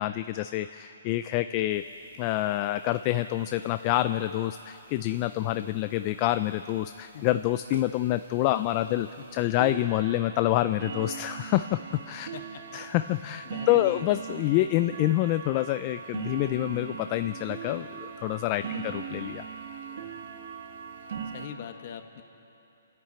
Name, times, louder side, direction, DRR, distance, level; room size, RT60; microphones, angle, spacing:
voice 1, 0.0-1.8 2.2-11.8 12.1-12.3 12.7-19.4, left 15 dB, 25° left, 11 dB, 0.4 m, -27 dB
sound 1, 1.7-1.8 2.1-2.2 2.4-2.6 2.9-3.3 4.0-4.1 4.6-4.7 5.1-5.2 5.6-5.7 6.2-6.3 6.7-6.9 7.3-7.4 7.7-21.5, right 7 dB, 50° right, 1.7 m, -40 dB
voice 2, 12.3-12.8 13.4-14.1 18.6-18.9 21.2-22.2, left 8 dB, 40° left, 7 dB, 1.4 m, -42 dB
28.5 x 10.5 x 8.8 m, 3.0 s
hypercardioid pair, 165°, 0 cm